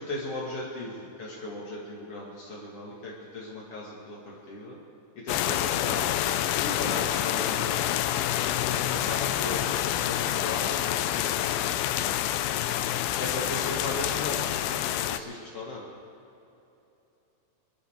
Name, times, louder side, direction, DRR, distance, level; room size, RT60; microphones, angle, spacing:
voice 1, 0.1-4.8 5.2-6.1 6.6-7.9 8.7-11.8 13.2-15.8, left 2 dB, 60° left, -5 dB, 1.6 m, -37 dB
sound 1, 5.3-15.2, left 12 dB, 85° left, 3.0 m, -27 dB
24.5 x 13.5 x 3.6 m, 2.9 s
omnidirectional pair, 5.8 m